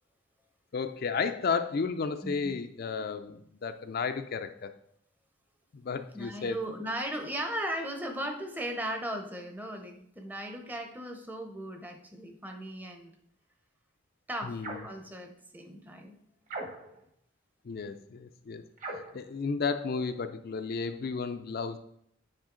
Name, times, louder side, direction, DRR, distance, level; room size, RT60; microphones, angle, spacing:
voice 1, 0.7-4.7 5.7-6.6 14.4-14.9 17.6-18.6 19.1-21.8, left 5 dB, 50° left, 8 dB, 0.4 m, -33 dB
voice 2, 2.2-2.5 6.1-13.1 14.3-14.6 14.8-16.2, right 1 dB, 10° right, 5 dB, 0.7 m, -37 dB
sound 1, 14.6-15.0 16.5-17.0 18.8-19.2, right 2 dB, 40° right, 1.2 m, -40 dB
8.8 x 5.0 x 3.8 m, 0.71 s
head